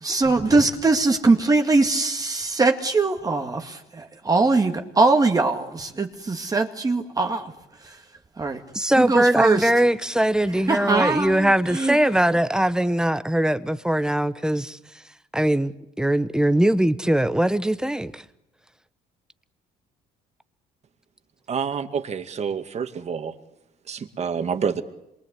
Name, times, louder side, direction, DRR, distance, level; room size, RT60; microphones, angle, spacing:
voice 1, 0.0-7.5 8.4-8.6 9.0-9.7 10.7-12.0, right 3 dB, 20° right, 2.1 m, -21 dB
voice 2, 8.7-14.8 15.3-15.7 16.0-18.2, right 1 dB, 5° right, 1.1 m, -21 dB
voice 3, 21.5-23.3 23.9-24.8, right 6 dB, 40° right, 2.2 m, -28 dB
27.0 x 23.0 x 8.4 m
cardioid pair, 110°, 17 cm